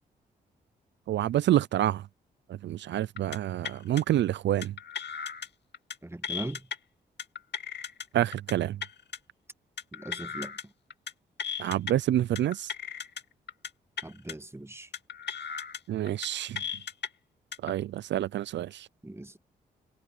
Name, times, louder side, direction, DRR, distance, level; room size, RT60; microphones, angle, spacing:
voice 1, 1.1-2.0 2.6-4.7 8.1-8.8 11.6-12.7 15.9-16.6 17.6-18.9, right 12 dB, 70° right, 0.5 m, -27 dB
sound 1, 3.2-3.4 3.6-4.0 4.6-5.5 5.7-6.0 6.2-6.8 7.2-8.1 8.3-8.5 8.8-9.2 9.8-10.6 10.9-11.1 11.4-11.9 12.4-13.2 13.5-13.7 14.0-14.3 14.9-15.8 16.1-16.3 16.6-17.1 17.5-17.7, left 7 dB, 65° left, 2.2 m, -36 dB
voice 2, 6.0-6.6 9.9-10.6 14.0-14.9 19.0-19.4, right 1 dB, 15° right, 1.5 m, -40 dB
supercardioid pair, 50°, 19 cm